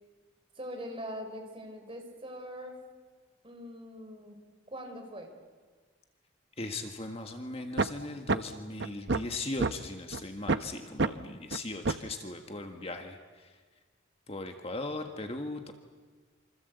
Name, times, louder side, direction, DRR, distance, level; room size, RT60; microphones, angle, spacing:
voice 1, 0.6-2.8 3.4-4.4 4.7-5.3, equal, 25° right, 4 dB, 4.4 m, -42 dB
voice 2, 6.6-13.5 14.3-15.7, left 2 dB, 30° left, 5 dB, 1.6 m, -38 dB
sound 1, 7.8-7.9 8.3-8.4 8.8-9.7 10.1-10.2 10.5-10.7 11.0-11.1 11.5-11.6 11.9-12.1, right 3 dB, 60° right, 0.8 m, -27 dB
27.0 x 26.0 x 8.2 m, 1.4 s
head